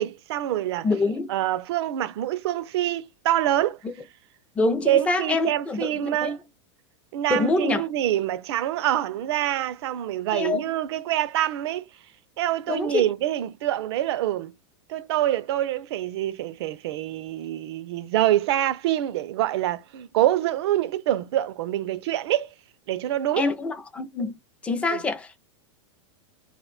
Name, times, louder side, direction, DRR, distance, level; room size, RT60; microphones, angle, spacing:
voice 1, 0.0-3.8 4.8-6.4 7.1-11.9 12.4-14.5 14.9-22.5 22.9-23.5 24.9-25.0, right 13 dB, 60° right, 0.4 m, -26 dB
voice 2, 0.8-1.3 4.6-6.3 7.3-7.8 10.3-10.7 12.7-13.0 23.4-24.4 24.6-25.4, left 3 dB, 10° left, 0.3 m, -25 dB
2.4 x 2.2 x 3.8 m
supercardioid pair, 170°, 16 cm